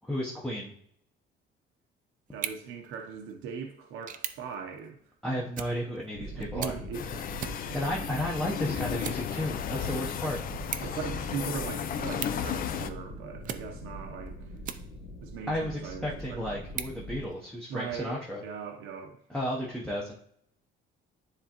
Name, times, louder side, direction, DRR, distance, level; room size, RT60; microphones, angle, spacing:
voice 1, 0.0-0.7 5.2-6.7 7.7-10.4 15.5-18.4 19.3-20.1, left 1 dB, 5° left, -4 dB, 0.7 m, -33 dB
sound 1, 2.3-15.3 15.8-17.8, right 9 dB, 40° right, 0.4 m, -44 dB
voice 2, 2.3-5.0 6.2-7.8 10.8-14.5 15.2-16.6 17.7-19.2, right 6 dB, 75° right, 3 dB, 0.8 m, -40 dB
sound 2, 6.2-17.3, equal, 70° left, 1.4 m, -42 dB
sound 3, 6.9-12.9, left 9 dB, 45° left, 0.4 m, -34 dB
9.9 x 3.4 x 2.9 m, 0.71 s
cardioid pair, 160°, 21 cm